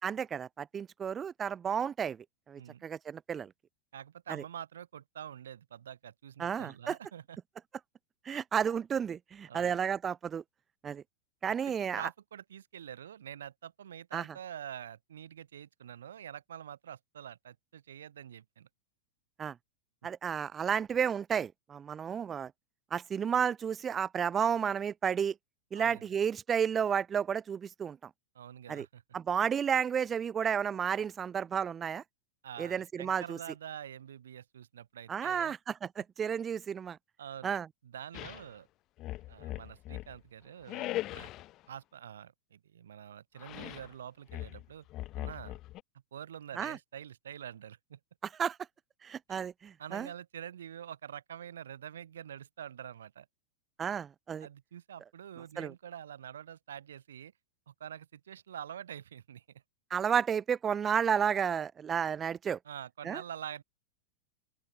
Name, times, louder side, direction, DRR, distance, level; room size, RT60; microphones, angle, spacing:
voice 1, 0.0-3.5 4.3-4.4 6.4-7.0 8.3-10.4 10.8-11.0 11.4-12.1 14.1-14.2 19.4-19.6 20.0-22.5 22.9-25.3 25.7-28.0 28.7-28.9 29.1-32.0 32.6-33.4 35.1-37.0 37.4-37.7 46.6-46.8 48.4-48.6 49.0-50.1 53.8-54.5 55.6-55.7 59.9-62.6 63.0-63.2, right 7 dB, 20° right, 2.2 m, -32 dB
voice 2, 3.9-7.4 8.3-8.4 9.5-9.8 11.5-18.7 25.7-26.1 28.3-29.0 32.4-35.5 37.2-37.6 37.8-38.7 39.3-41.3 41.7-44.9 45.2-45.6 46.1-48.0 49.8-53.3 54.4-57.3 57.7-59.4 62.6-63.6, right 9 dB, 65° right, 3.7 m, -46 dB
sound 1, 38.1-38.5 39.0-40.2 40.7-41.5 43.4-43.9 44.3-45.8, left 16 dB, 35° left, 1.2 m, -40 dB
open air
figure-of-eight pair, 90°, 0 cm